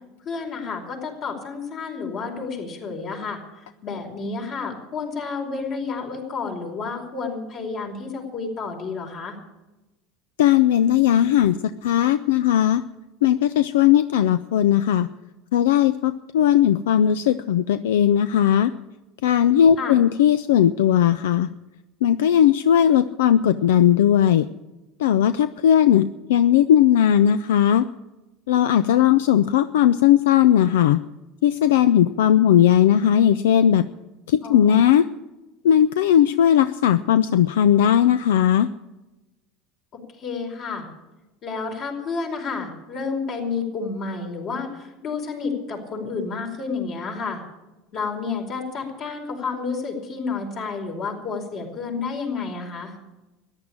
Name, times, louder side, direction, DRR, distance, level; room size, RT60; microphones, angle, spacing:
voice 1, 0.2-3.4 3.8-9.4 19.8-20.0 34.4-34.9 40.2-40.9 41.4-47.4 47.9-52.9, left 4 dB, 55° left, 1 dB, 4.9 m, -30 dB
voice 2, 10.4-11.5 11.8-12.8 13.2-15.1 15.5-18.7 19.2-21.5 22.0-24.5 25.0-27.8 28.5-31.0 31.4-33.8 34.3-35.1 35.6-38.7, left 10 dB, 85° left, 13 dB, 0.4 m, -17 dB
14.0 x 10.5 x 8.8 m, 1.0 s
supercardioid pair, 95°, 0 cm